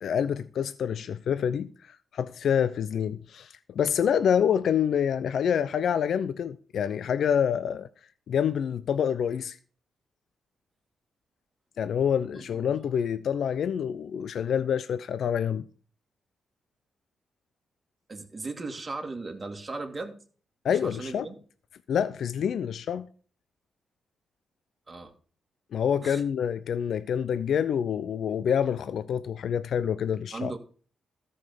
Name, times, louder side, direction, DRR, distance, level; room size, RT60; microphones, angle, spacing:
voice 1, 0.0-7.9 8.3-9.6 11.8-15.7 20.6-21.3 21.9-23.1 25.7-30.5, left 8 dB, 70° left, 0.5 m, -27 dB
voice 2, 18.1-20.2 20.8-21.4 24.9-25.1 26.0-26.2 30.3-30.6, right 3 dB, 25° right, 2.3 m, -37 dB
13.5 x 5.5 x 7.0 m
cardioid pair, 75°, 0 cm